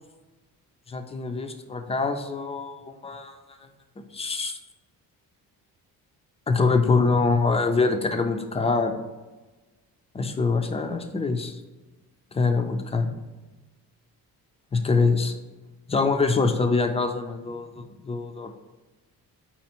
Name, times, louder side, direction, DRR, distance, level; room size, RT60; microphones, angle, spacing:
voice 1, 0.9-3.4 4.1-4.6 6.5-9.0 10.1-11.5 12.3-13.1 14.7-15.3 15.9-18.5, left 4 dB, 20° left, 6 dB, 0.3 m, -24 dB
4.3 x 4.1 x 2.9 m, 1.2 s
cardioid pair, 120°, 36 cm